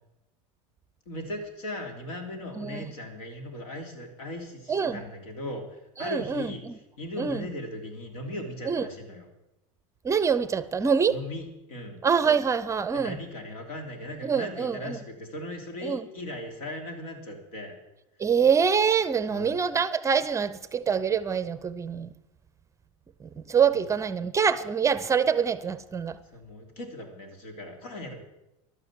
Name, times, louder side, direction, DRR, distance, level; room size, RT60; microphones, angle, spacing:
voice 1, 1.0-9.3 11.1-12.0 12.9-17.7 19.3-19.6 23.7-24.1 26.3-28.2, left 1 dB, 85° left, 3.5 m, -38 dB
voice 2, 2.6-2.9 4.7-5.0 6.0-6.5 7.2-7.4 8.7-8.8 10.0-11.2 12.0-13.2 14.2-15.0 15.8-16.0 18.2-22.1 23.2-26.2, right 6 dB, 15° right, 0.5 m, -25 dB
12.0 x 9.8 x 7.8 m
supercardioid pair, 130°, 17 cm